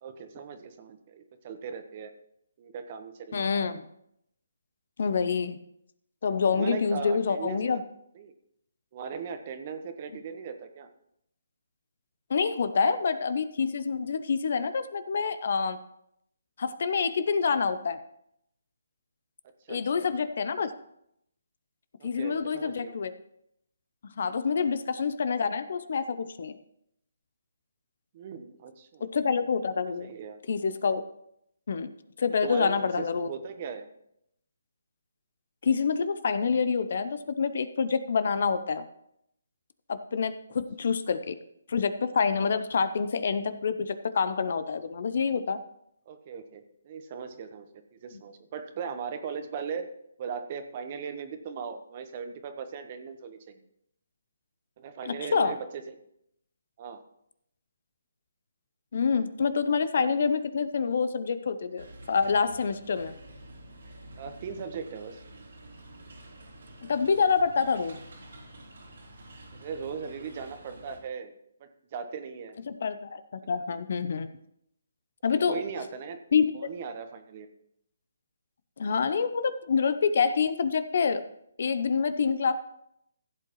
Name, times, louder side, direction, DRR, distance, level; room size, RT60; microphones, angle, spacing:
voice 1, 0.0-2.1 2.6-3.7 6.5-7.8 8.1-8.3 8.9-10.9 19.6-20.1 22.0-23.0 24.4-24.7 28.1-29.1 30.0-30.4 32.4-33.9 46.1-47.7 47.9-49.9 50.2-53.6 54.8-55.8 56.8-57.0 64.2-65.2 69.6-71.3 71.6-72.6 75.3-76.2 76.5-77.5, right 6 dB, 35° right, 8 dB, 1.1 m, -38 dB
voice 2, 3.3-3.9 5.0-5.6 6.2-7.8 12.3-15.8 16.6-18.0 19.7-20.7 22.0-23.1 24.0-26.6 29.0-30.1 30.5-31.0 31.7-31.9 32.2-33.3 35.6-38.8 39.9-41.4 41.7-45.6 55.1-55.5 58.9-63.1 66.8-68.0 72.7-74.3 75.2-75.6 76.3-76.7 78.8-81.2 81.6-82.5, left 5 dB, 55° left, 12 dB, 0.7 m, -27 dB
sound 1, 61.8-71.0, right 1 dB, 65° right, 2.9 m, -48 dB
15.5 x 7.9 x 3.1 m, 0.76 s
figure-of-eight pair, 145°, 0 cm